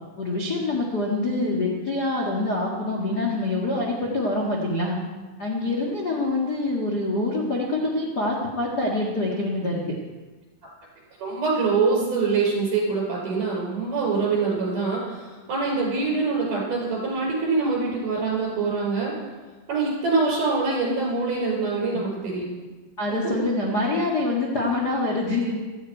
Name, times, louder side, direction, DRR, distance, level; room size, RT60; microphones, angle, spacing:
voice 1, 0.2-5.0 5.4-9.9 21.9-22.0 23.0-25.6, left 2 dB, 55° left, -2 dB, 1.0 m, -25 dB
voice 2, 11.2-19.1 19.7-22.4 23.2-23.3, right 4 dB, 50° right, -3 dB, 6.9 m, -24 dB
17.0 x 14.0 x 4.6 m, 1.3 s
omnidirectional pair, 5.0 m